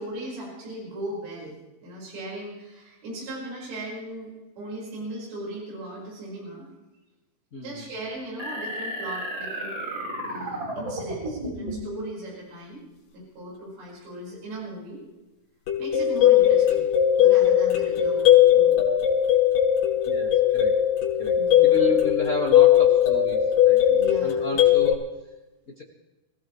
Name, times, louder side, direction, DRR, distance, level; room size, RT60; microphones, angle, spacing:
voice 1, 0.0-1.5 1.8-6.7 7.6-9.8 10.3-12.8 13.1-15.0 15.8-16.9 17.2-18.9 21.4-22.0 23.9-24.7, right 1 dB, 75° right, -4 dB, 7.2 m, -38 dB
voice 2, 7.5-7.8 20.0-20.8 21.2-21.4 21.6-23.8 24.2-25.0 25.8-25.9, left 2 dB, 55° left, -2 dB, 0.8 m, -32 dB
sound 1, 8.4-11.9, right 1 dB, 25° right, 4.6 m, -33 dB
sound 2, 15.7-24.9, left 11 dB, 85° left, 5.4 m, -19 dB
27.0 x 16.5 x 3.2 m, 1.0 s
omnidirectional pair, 4.9 m